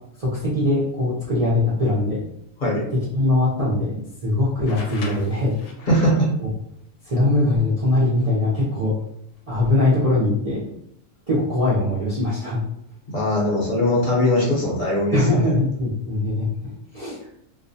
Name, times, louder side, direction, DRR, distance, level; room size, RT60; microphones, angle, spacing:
voice 1, 0.2-2.2 3.1-5.9 6.4-6.5 7.0-8.9 9.5-10.7 11.3-12.6 15.1-16.5 16.9-17.2, left 2 dB, 45° right, -8 dB, 0.4 m, -21 dB
sound 1, 4.7-6.2 8.1-8.2 9.4-9.7, left 3 dB, 85° left, 1.0 m, -39 dB
voice 2, 5.9-6.3 13.1-15.2, left 1 dB, 50° left, -5 dB, 0.7 m, -20 dB
2.4 x 2.1 x 2.6 m, 0.74 s
omnidirectional pair, 1.3 m